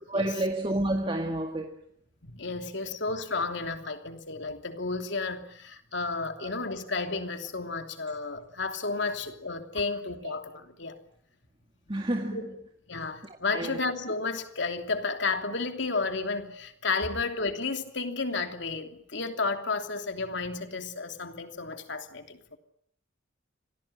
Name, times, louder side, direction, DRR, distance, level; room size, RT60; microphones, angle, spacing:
voice 1, 0.1-1.8 6.4-6.5 9.0-9.1 11.9-12.4 13.2-13.8, right 1 dB, 25° right, 2.0 m, -30 dB
voice 2, 2.3-11.0 12.3-12.4 12.9-22.6, left 3 dB, 65° left, 3.0 m, -32 dB
26.5 x 18.5 x 9.8 m
head